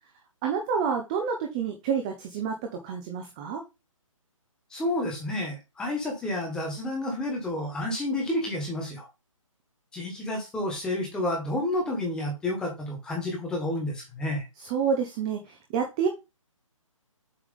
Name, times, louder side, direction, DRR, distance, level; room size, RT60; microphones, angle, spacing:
voice 1, 0.4-3.6 14.6-16.1, right 6 dB, 10° right, 3 dB, 0.6 m, -28 dB
voice 2, 4.7-9.1 9.9-14.4, left 1 dB, 5° left, -1 dB, 1.4 m, -30 dB
7.4 x 3.2 x 5.2 m, 0.25 s
hypercardioid pair, 170°, 18 cm